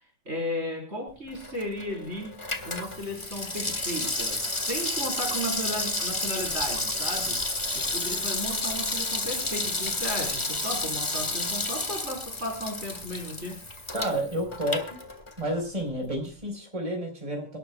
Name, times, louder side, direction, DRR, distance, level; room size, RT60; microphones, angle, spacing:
voice 1, 0.3-2.4 2.6-7.4 7.7-13.6, equal, 40° right, 1 dB, 4.4 m, -34 dB
Water tap faucet / Sink (filling or washing), 1.3-15.6 15.9-16.0, left 2 dB, 20° left, 1.4 m, -31 dB
voice 2, 13.9-15.0 15.4-17.6, equal, 20° right, 1 dB, 4.4 m, -30 dB
28.5 x 12.0 x 2.3 m, 0.34 s
omnidirectional pair, 1.8 m